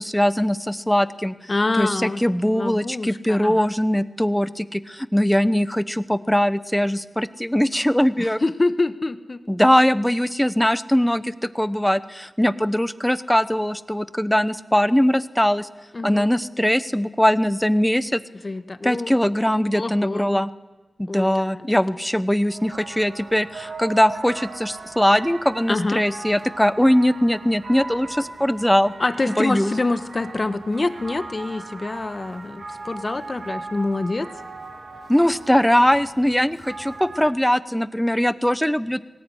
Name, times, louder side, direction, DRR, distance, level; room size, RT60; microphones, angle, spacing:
voice 1, 0.0-1.5 1.8-8.4 9.5-15.7 16.0-18.2 18.8-20.5 21.0-28.9 29.3-29.7 35.1-39.0, equal, 5° left, 15 dB, 0.9 m, -21 dB
voice 2, 1.5-3.7 8.2-9.4 15.9-16.3 18.4-19.1 19.7-20.5 21.1-21.6 25.7-26.0 29.0-34.3, left 2 dB, 35° left, 11 dB, 1.4 m, -26 dB
sound 1, 22.4-37.3, right 3 dB, 65° right, 3.1 m, -38 dB
24.0 x 19.0 x 10.0 m, 1.2 s
wide cardioid pair, 110°, 0 cm